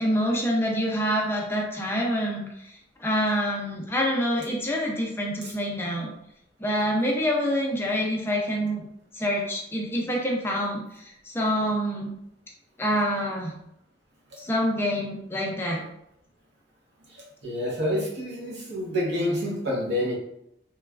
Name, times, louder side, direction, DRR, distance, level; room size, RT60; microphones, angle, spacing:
voice 1, 0.0-6.1 6.6-8.9 9.1-12.1 12.8-13.5 14.4-15.8, equal, 15° left, -1 dB, 0.4 m, -26 dB
voice 2, 17.4-20.1, left 1 dB, 70° right, -2 dB, 0.8 m, -27 dB
3.0 x 2.2 x 2.3 m, 0.77 s
head